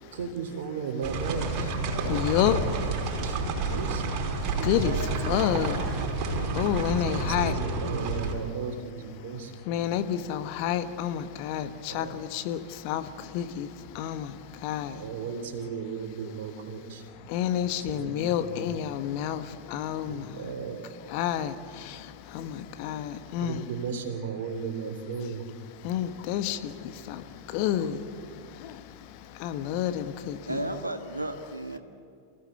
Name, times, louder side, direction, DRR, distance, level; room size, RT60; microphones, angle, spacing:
voice 1, 0.1-1.7 3.2-4.3 7.0-9.7 11.6-12.2 14.8-17.0 17.6-18.8 20.0-20.9 23.4-25.5, right 5 dB, 55° right, 5 dB, 3.4 m, -36 dB
sound 1, 1.0-8.3, right 3 dB, 40° right, 5.3 m, -29 dB
voice 2, 1.9-3.4 4.5-7.5 9.7-15.0 17.2-20.4 21.1-23.6 25.8-30.6, left 10 dB, 45° left, 10 dB, 1.3 m, -30 dB
voice 3, 30.4-31.8, right 1 dB, 85° right, 7 dB, 1.4 m, -34 dB
28.0 x 17.0 x 8.2 m, 2.4 s
figure-of-eight pair, 90°, 0 cm